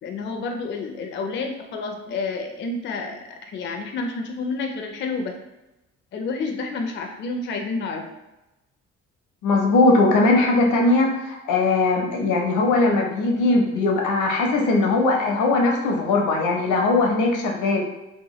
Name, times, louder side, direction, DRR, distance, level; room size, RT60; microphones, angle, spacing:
voice 1, 0.0-5.3 6.1-8.1, left 3 dB, 40° left, 3 dB, 0.4 m, -29 dB
voice 2, 9.4-17.8, left 2 dB, 80° left, 1 dB, 0.7 m, -20 dB
2.9 x 2.1 x 3.0 m, 0.99 s
cardioid pair, 90°, 30 cm